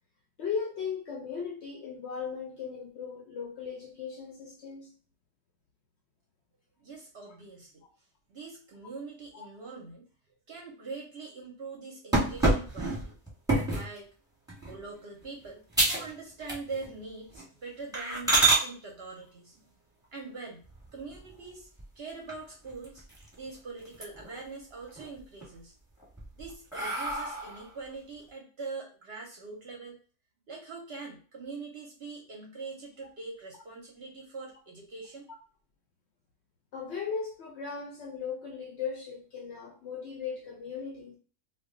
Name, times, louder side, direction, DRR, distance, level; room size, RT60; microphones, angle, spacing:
voice 1, 0.4-4.9 9.3-9.5 36.7-41.2, left 6 dB, 65° left, 1 dB, 0.7 m, -37 dB
voice 2, 6.8-7.8 8.3-10.1 10.5-13.2 13.7-14.1 14.6-15.6 15.9-19.6 20.1-20.6 20.9-21.7 22.0-23.0 23.4-25.7 26.3-30.0 30.5-35.3, right 4 dB, 60° right, 0 dB, 0.7 m, -43 dB
sound 1, 12.1-13.9 14.5-14.8 15.2-15.3 15.7-16.1 16.4-16.9 17.3-17.4 17.9-18.6 20.6-21.3 21.8-21.9 22.3-22.4 22.7-23.5 23.8-24.4 24.8-25.5 26.0-27.7, right 2 dB, 5° right, 0.8 m, -28 dB
2.3 x 2.2 x 3.6 m, 0.39 s
omnidirectional pair, 1.5 m